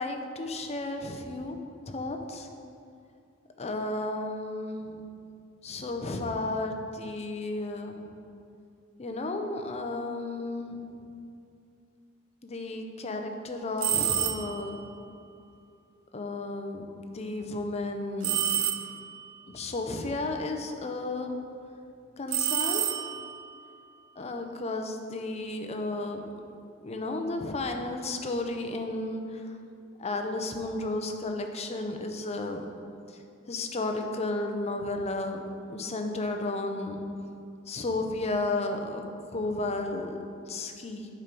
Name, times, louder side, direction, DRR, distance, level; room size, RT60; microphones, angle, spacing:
voice 1, 0.0-1.6 1.9-2.5 3.6-5.0 5.6-8.1 9.0-10.9 12.4-14.8 16.1-18.7 19.5-21.3 22.2-22.8 24.2-26.2 26.8-29.6 30.0-32.7 33.5-35.4 35.7-37.0 37.7-39.0 39.3-40.2 40.5-41.1, left 2 dB, 30° left, 5 dB, 0.6 m, -33 dB
sound 1, 13.8-14.7 18.2-19.2 22.3-23.4, right 11 dB, 70° right, 0.5 m, -28 dB
8.1 x 4.4 x 5.3 m, 2.5 s
head